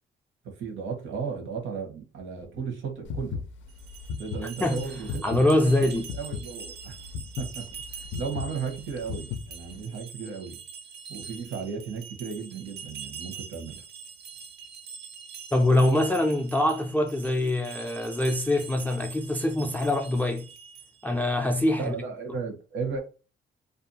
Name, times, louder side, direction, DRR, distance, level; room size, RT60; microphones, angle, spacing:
voice 1, 0.4-3.4 4.2-5.7 6.2-6.9 7.4-7.7 8.1-10.6 11.1-13.8 21.7-23.0, right 5 dB, 75° right, 0.9 m, -35 dB
sound 1, 3.0-9.8, left 6 dB, 70° left, 0.4 m, -36 dB
sound 2, 3.7-21.1, right 6 dB, 55° right, 0.5 m, -44 dB
voice 2, 5.2-6.1 15.5-20.5 21.0-21.9, left 1 dB, 10° left, 0.3 m, -24 dB
2.5 x 2.3 x 2.7 m
cardioid pair, 90°, 20 cm